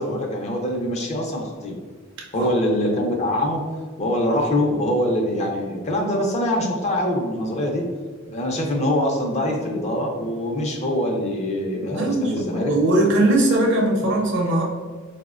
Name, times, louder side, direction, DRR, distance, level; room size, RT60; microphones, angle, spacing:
voice 1, 0.0-1.7 2.3-3.6 4.0-7.8 8.3-12.7, left 1 dB, 35° left, 0 dB, 0.5 m, -24 dB
voice 2, 11.8-14.6, right 1 dB, 65° right, 0 dB, 0.6 m, -20 dB
4.2 x 2.1 x 2.4 m, 1.5 s
head